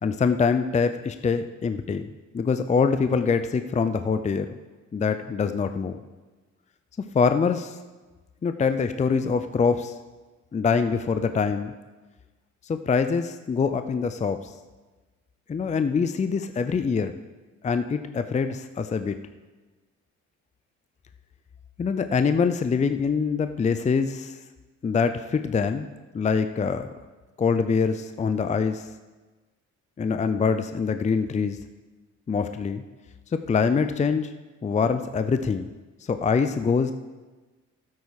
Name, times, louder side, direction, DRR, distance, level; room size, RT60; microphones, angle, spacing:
voice 1, 0.0-4.5 4.9-6.0 7.1-7.8 8.4-9.9 10.5-11.7 12.6-14.5 15.5-17.1 17.6-19.2 21.8-24.4 24.8-25.9 26.1-26.9 27.4-28.9 30.0-31.6 32.3-32.8 33.3-34.3 34.6-35.7 36.1-36.9, left 5 dB, 25° left, 9 dB, 0.5 m, -24 dB
12.5 x 8.5 x 4.8 m, 1.3 s
cardioid pair, 90°, 30 cm